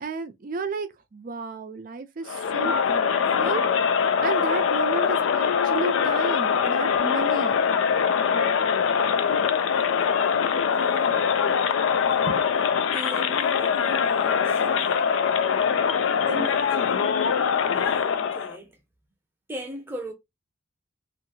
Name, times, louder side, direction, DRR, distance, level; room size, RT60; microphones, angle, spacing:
voice 1, 0.0-3.6 4.2-7.6 12.3-12.4, right 3 dB, 45° right, 0.4 m, -32 dB
Crowd, 2.3-18.6, left 6 dB, 70° left, 0.3 m, -23 dB
voice 2, 10.5-11.3 12.9-15.3 16.3-17.1 17.7-18.8 19.5-20.1, equal, 10° right, 0.7 m, -39 dB
2.7 x 2.5 x 2.6 m
head